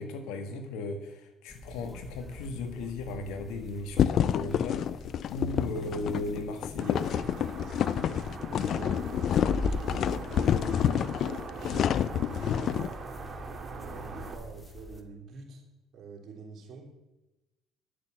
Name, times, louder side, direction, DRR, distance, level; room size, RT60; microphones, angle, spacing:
voice 1, 0.0-7.4, left 2 dB, 80° left, 7 dB, 1.6 m, -37 dB
sound 1, 1.5-15.0, left 1 dB, 15° left, 1.4 m, -43 dB
sound 2, 4.0-12.9, left 9 dB, 55° left, 0.4 m, -28 dB
sound 3, 6.8-14.3, right 4 dB, 35° right, 1.8 m, -42 dB
voice 2, 8.5-9.3 9.6-12.0 12.3-13.0 13.7-15.6 15.9-16.9, right 5 dB, 55° right, 1 dB, 3.1 m, -46 dB
10.5 x 6.7 x 7.5 m, 1.0 s
supercardioid pair, 95°, 0 cm